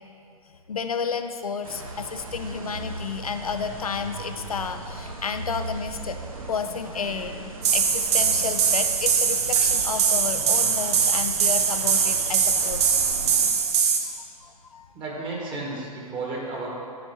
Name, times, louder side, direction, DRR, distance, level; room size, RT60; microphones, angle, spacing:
voice 1, 0.7-6.2 6.5-13.4 14.4-14.9, left 6 dB, 75° left, 8 dB, 0.6 m, -31 dB
sound 1, 1.6-13.5, right 2 dB, 70° right, 1.2 m, -38 dB
sound 2, 7.6-14.0, right 6 dB, 50° right, 0.9 m, -22 dB
voice 2, 14.9-16.7, right 3 dB, 25° right, -3 dB, 1.7 m, -32 dB
10.0 x 4.2 x 4.6 m, 2.4 s
figure-of-eight pair, 110°, 19 cm